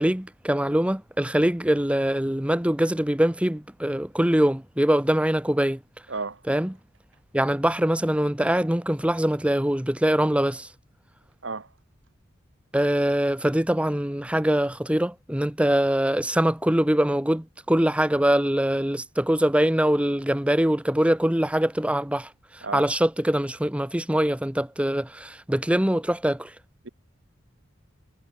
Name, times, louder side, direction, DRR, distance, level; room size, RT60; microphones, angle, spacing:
voice 1, 0.0-5.8 6.5-6.7 7.3-10.7 12.7-26.5, right 1 dB, 5° right, 0.8 m, -23 dB
voice 2, 6.1-6.4 11.4-11.7 22.6-22.8 26.8-26.9, right 4 dB, 65° right, 1.4 m, -32 dB
head